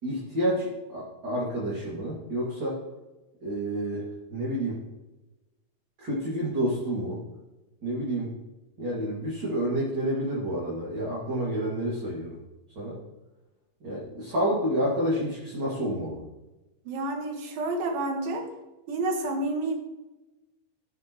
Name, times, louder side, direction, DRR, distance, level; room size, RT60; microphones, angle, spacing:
voice 1, 0.0-2.8 3.4-4.8 6.0-7.2 7.8-8.3 8.8-12.4 12.8-13.0 13.8-16.2, equal, 35° right, -7 dB, 2.4 m, -29 dB
voice 2, 16.9-18.5 18.9-19.8, right 2 dB, 85° right, 3 dB, 3.2 m, -29 dB
15.0 x 6.8 x 3.0 m, 1.1 s
omnidirectional pair, 4.0 m